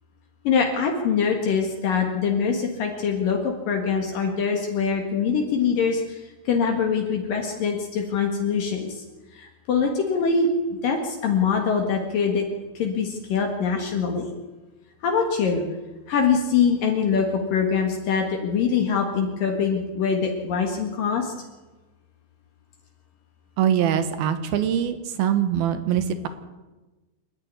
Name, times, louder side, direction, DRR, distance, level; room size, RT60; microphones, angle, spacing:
voice 1, 0.4-9.0 9.3-12.4 12.7-14.3 15.0-15.6 16.1-21.3, left 6 dB, 65° left, 2 dB, 3.4 m, -23 dB
voice 2, 23.6-26.3, right 9 dB, 80° right, 10 dB, 3.3 m, -23 dB
27.0 x 10.5 x 9.7 m, 1.2 s
omnidirectional pair, 4.3 m